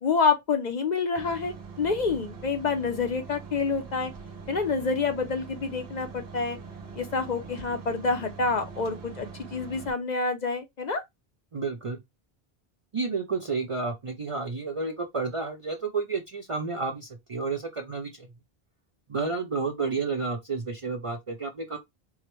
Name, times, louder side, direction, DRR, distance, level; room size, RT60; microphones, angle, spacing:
voice 1, 0.0-4.1 4.5-6.6 7.0-11.0, left 4 dB, 50° left, 0.6 m, -27 dB
sound 1, 1.2-9.9, right 5 dB, 70° right, 1.1 m, -43 dB
voice 2, 11.5-12.0 12.9-18.3 19.1-21.8, right 4 dB, 45° right, 0.5 m, -31 dB
4.6 x 2.1 x 3.0 m
omnidirectional pair, 1.1 m